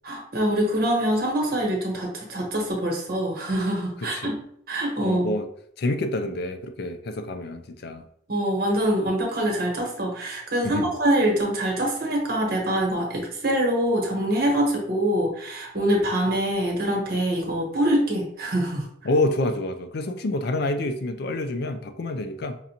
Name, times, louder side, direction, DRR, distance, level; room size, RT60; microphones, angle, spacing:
voice 1, 0.0-4.4 4.7-5.3 8.3-18.8, right 1 dB, 50° right, 1.1 m, -24 dB
voice 2, 4.0-4.3 5.0-5.5 5.8-8.1 10.6-10.9 19.0-22.6, left 2 dB, 55° left, 0.4 m, -27 dB
5.4 x 2.4 x 2.8 m
head